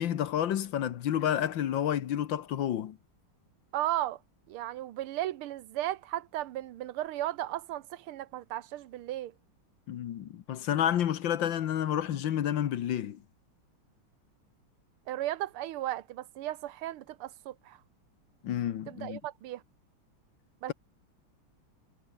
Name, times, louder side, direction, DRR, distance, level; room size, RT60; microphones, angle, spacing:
voice 1, 0.0-3.0 9.9-13.2 18.4-19.2, left 10 dB, 65° left, 1.7 m, -30 dB
voice 2, 3.7-4.2 4.5-9.3 15.1-17.8 18.9-19.6 20.6-20.7, right 14 dB, 85° right, 1.7 m, -35 dB
omnidirectional pair, 2.4 m